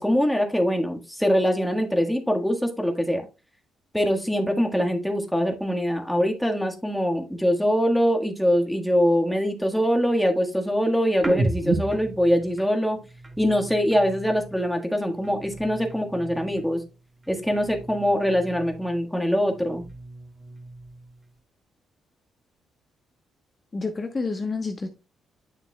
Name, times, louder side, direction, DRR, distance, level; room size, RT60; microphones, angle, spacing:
voice 1, 0.0-3.2 3.9-13.0 13.4-16.8 17.3-19.8, equal, ahead, 3 dB, 1.5 m, -23 dB
sound 1, 11.2-14.8 15.1-16.9 17.2-19.1 19.4-21.3, right 2 dB, 20° right, 1.7 m, -34 dB
voice 2, 23.7-24.9, left 4 dB, 30° left, 5 dB, 1.0 m, -29 dB
9.2 x 6.6 x 2.2 m, 0.29 s
cardioid pair, 90°, 0 cm